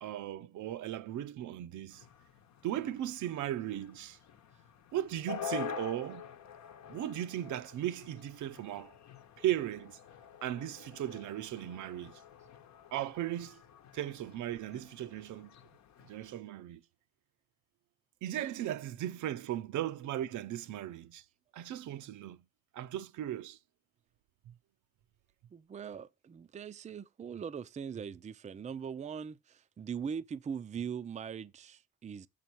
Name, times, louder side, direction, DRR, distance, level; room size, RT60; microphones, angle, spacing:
voice 1, 0.0-2.0 2.6-4.2 4.9-6.3 6.9-8.9 9.4-10.0 10.4-12.2 12.9-13.6 13.9-15.5 16.1-16.8 18.2-21.2 21.5-22.4 22.7-23.6 24.5-24.6, right 12 dB, 75° right, 0.6 m, -37 dB
sound 1, 1.9-16.4, left 9 dB, 65° left, 0.9 m, -47 dB
voice 2, 25.5-32.3, right 7 dB, 25° right, 0.4 m, -41 dB
6.7 x 5.6 x 4.5 m
cardioid pair, 90°, 30 cm